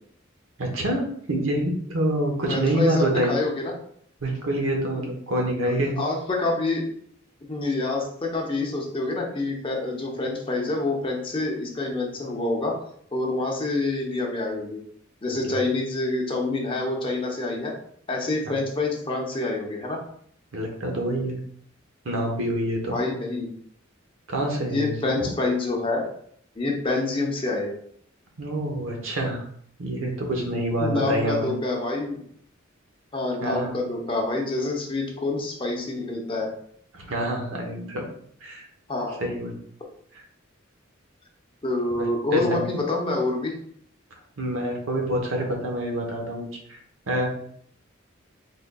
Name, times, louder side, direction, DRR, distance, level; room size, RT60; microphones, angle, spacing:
voice 1, 0.6-3.4 4.2-5.9 15.3-15.5 18.5-18.6 20.5-21.4 22.0-23.0 24.3-25.3 28.4-29.5 29.8-31.5 33.4-33.7 36.9-38.0 38.4-38.7 39.2-39.6 40.1-40.2 41.9-42.6 44.4-46.8 47.1-47.3, right 1 dB, 85° right, 1 dB, 0.9 m, -27 dB
voice 2, 2.5-3.7 5.0-5.1 6.0-6.8 7.4-12.7 13.1-14.8 15.2-17.7 18.1-20.0 22.9-23.5 24.7-26.1 26.6-27.7 30.8-32.2 33.1-36.5 38.9-39.2 41.6-43.5, left 2 dB, 25° left, -1 dB, 0.7 m, -27 dB
3.7 x 3.7 x 2.2 m, 0.64 s
head